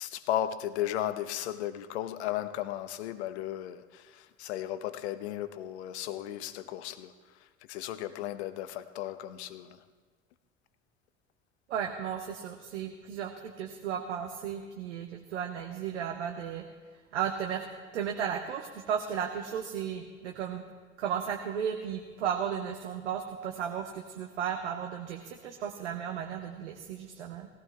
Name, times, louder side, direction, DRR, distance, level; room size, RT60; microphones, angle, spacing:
voice 1, 0.0-7.1 7.7-9.8, left 12 dB, 60° left, 0.9 m, -35 dB
voice 2, 11.7-16.6 17.1-17.7 17.9-20.6 21.0-27.5, right 8 dB, 70° right, 1.0 m, -34 dB
19.0 x 15.0 x 3.3 m
figure-of-eight pair, 65°, 37 cm